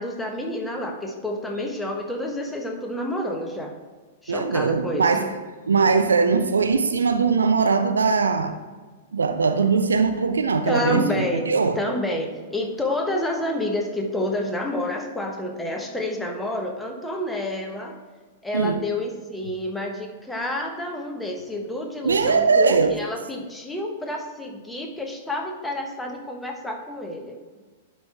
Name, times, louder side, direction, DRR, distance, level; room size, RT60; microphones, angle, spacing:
voice 1, 0.0-3.8 4.2-5.3 10.7-11.4 11.7-18.0 18.4-27.4, left 1 dB, 5° left, 1.2 m, -29 dB
voice 2, 4.3-5.3 5.7-8.6 9.1-11.8 18.5-18.8 22.0-23.0, right 5 dB, 75° right, 0.5 m, -20 dB
10.5 x 5.0 x 3.4 m
figure-of-eight pair, 100°, 0 cm